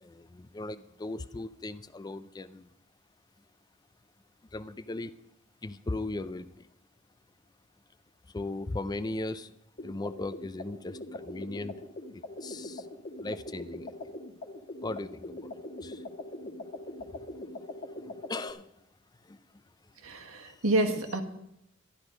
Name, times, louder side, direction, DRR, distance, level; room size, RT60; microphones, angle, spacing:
voice 1, 0.0-2.7 4.5-5.1 5.6-6.7 8.3-9.5 9.8-11.7 12.1-12.9 13.2-13.9 14.8-15.5 15.8-16.0 18.3-18.6 19.3-19.4, left 2 dB, 20° left, 14 dB, 0.4 m, -37 dB
sound 1, 9.8-18.5, left 1 dB, 45° left, 1.4 m, -42 dB
voice 2, 20.0-21.2, right 2 dB, 80° right, 4 dB, 1.5 m, -28 dB
12.5 x 11.5 x 5.2 m, 0.81 s
head